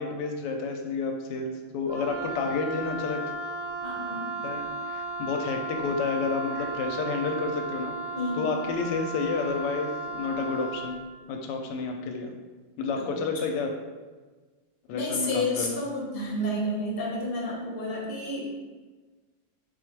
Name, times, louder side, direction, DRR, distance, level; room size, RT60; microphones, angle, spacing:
voice 1, 0.0-3.2 4.4-8.0 8.4-11.0 11.3-12.3 12.8-13.7 14.9-15.8, left 4 dB, 75° left, 3 dB, 1.1 m, -30 dB
Wind instrument woodwind instrument, 1.9-11.0, right 2 dB, 90° right, 0.7 m, -35 dB
voice 2, 3.8-4.4 6.5-6.7 8.1-8.5 12.9-13.1 14.9-18.7, left 1 dB, 40° left, -3 dB, 0.8 m, -31 dB
4.2 x 2.3 x 4.5 m, 1.3 s
omnidirectional pair, 2.1 m